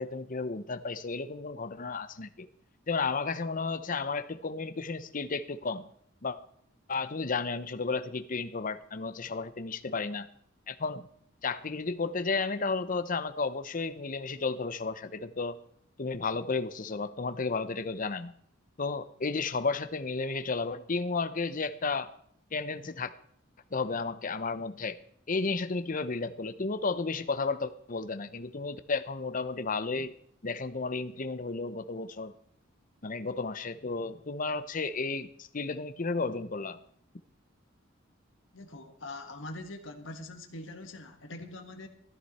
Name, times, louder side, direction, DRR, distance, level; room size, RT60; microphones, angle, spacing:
voice 1, 0.0-2.5 2.9-5.8 6.2-6.4 6.9-10.3 10.7-11.0 11.4-15.6 16.0-18.3 18.8-22.1 22.5-23.1 23.7-25.0 25.3-30.1 30.4-32.3 33.0-36.8, left 4 dB, 45° left, 11 dB, 0.8 m, -33 dB
voice 2, 38.5-41.9, left 2 dB, 70° left, 6 dB, 1.7 m, -43 dB
14.0 x 12.5 x 4.3 m, 0.64 s
head